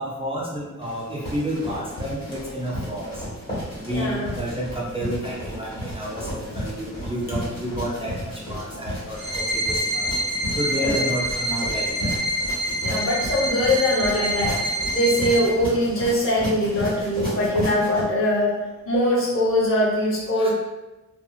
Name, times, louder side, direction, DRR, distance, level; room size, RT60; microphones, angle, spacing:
voice 1, 0.0-3.2 3.8-10.1 10.6-12.2 20.4-20.5, equal, 20° right, -5 dB, 0.5 m, -30 dB
sound 1, 0.8-18.0, equal, 30° left, 1.5 m, -33 dB
voice 2, 3.9-4.2 10.8-11.0 12.8-14.6 14.9-18.6 18.9-20.5, left 1 dB, 45° left, -5 dB, 1.0 m, -22 dB
sound 2, 9.1-15.4, equal, 65° right, 0.6 m, -26 dB
2.7 x 2.3 x 2.4 m, 1.1 s
cardioid pair, 90°, 29 cm